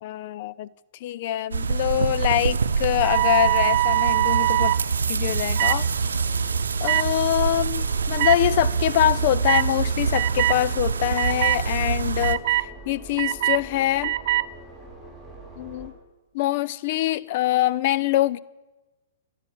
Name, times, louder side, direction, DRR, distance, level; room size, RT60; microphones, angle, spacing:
voice 1, 0.0-0.7 1.0-4.7 5.1-5.9 6.8-14.2 15.6-15.9 16.4-18.4, left 13 dB, 50° left, 0.5 m, -24 dB
sound 1, 1.5-12.4, right 5 dB, 80° right, 0.7 m, -25 dB
sound 2, 2.6-15.9, right 1 dB, 15° left, 6.9 m, -45 dB
sound 3, 3.0-4.8 5.6-5.8 6.8-7.0 8.2-8.3 9.5-9.7 10.1-10.6 11.1-11.6 12.2-12.6 13.2-13.6 14.0-14.4, right 16 dB, 50° right, 0.4 m, -22 dB
14.5 x 12.5 x 7.8 m
hypercardioid pair, 115°, 0 cm